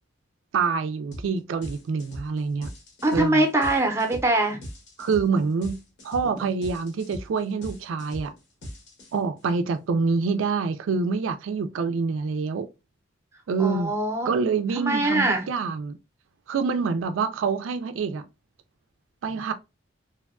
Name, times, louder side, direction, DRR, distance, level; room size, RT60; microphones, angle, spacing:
voice 1, 0.5-2.7 3.1-3.4 5.0-5.8 6.0-8.3 9.1-12.7 13.5-13.9 14.2-16.0 16.5-18.2 19.2-19.5, right 5 dB, 85° right, 0.3 m, -26 dB
sound 1, 1.1-1.3 1.6-9.4, equal, 65° left, 0.9 m, -40 dB
voice 2, 3.0-4.6 13.6-14.3 14.8-15.5, right 2 dB, 15° right, 0.5 m, -23 dB
3.4 x 2.2 x 2.3 m
head